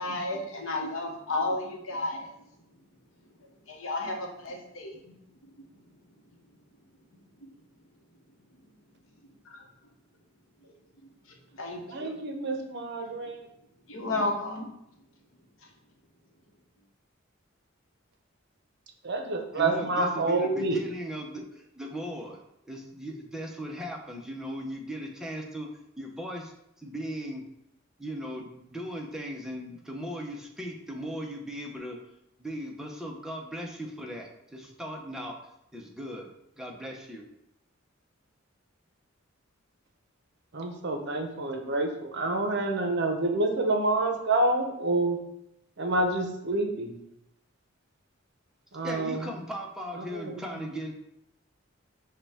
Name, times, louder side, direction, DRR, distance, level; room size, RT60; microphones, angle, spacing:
voice 1, 0.0-2.3 3.7-5.0 7.4-7.5 11.6-12.1 13.9-14.7, left 2 dB, 75° left, 1 dB, 0.9 m, -32 dB
voice 2, 11.9-13.5 19.0-20.8 40.5-45.2 45.8-47.0 48.7-49.3 50.0-50.7, right 2 dB, 60° right, 4 dB, 0.7 m, -28 dB
voice 3, 19.5-22.4 22.7-25.7 26.0-26.5 26.8-27.4 28.0-32.0 32.4-35.4 35.7-36.3 36.6-37.2 48.8-51.0, equal, 5° right, 0 dB, 0.6 m, -38 dB
6.4 x 2.2 x 3.5 m, 0.80 s
head